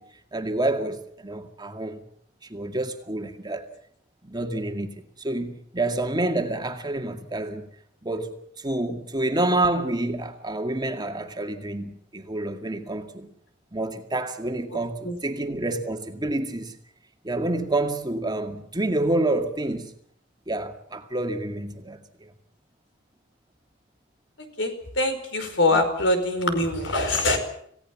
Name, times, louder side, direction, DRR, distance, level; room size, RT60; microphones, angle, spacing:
voice 1, 0.0-2.0 2.5-3.7 4.2-7.7 8.0-13.3 13.7-16.8 17.2-19.9 20.5-22.3 25.7-25.8, right 2 dB, 20° right, 2.0 m, -28 dB
voice 2, 24.6-27.4, left 2 dB, 70° left, 5.1 m, -23 dB
27.0 x 17.5 x 7.3 m
head